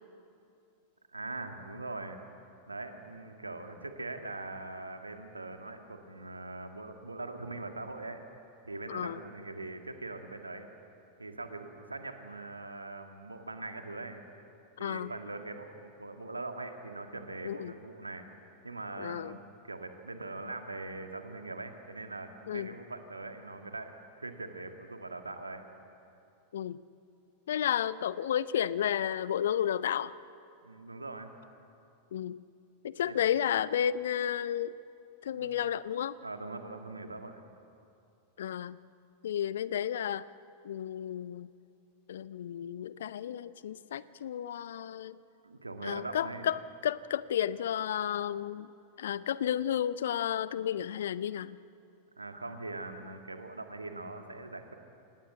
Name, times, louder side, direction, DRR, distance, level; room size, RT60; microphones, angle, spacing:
voice 1, 1.1-2.2 2.7-8.2 8.6-10.7 11.2-14.2 14.8-18.3 18.6-19.4 19.6-23.9 24.2-25.6 30.6-31.3 33.0-33.2 35.3-35.5 36.2-37.4 45.4-46.5 52.2-54.7, right 2 dB, 80° right, 6 dB, 1.9 m, -42 dB
voice 2, 14.8-15.1 17.4-17.7 19.0-19.4 22.5-22.7 26.5-26.8 27.5-30.1 32.1-32.4 32.8-34.7 35.2-36.2 38.4-38.8 39.2-40.3 40.6-41.5 42.1-45.2 45.8-48.7 49.0-51.6, left 10 dB, 60° left, 18 dB, 0.6 m, -32 dB
26.5 x 19.0 x 7.8 m, 2.6 s
figure-of-eight pair, 90°, 0 cm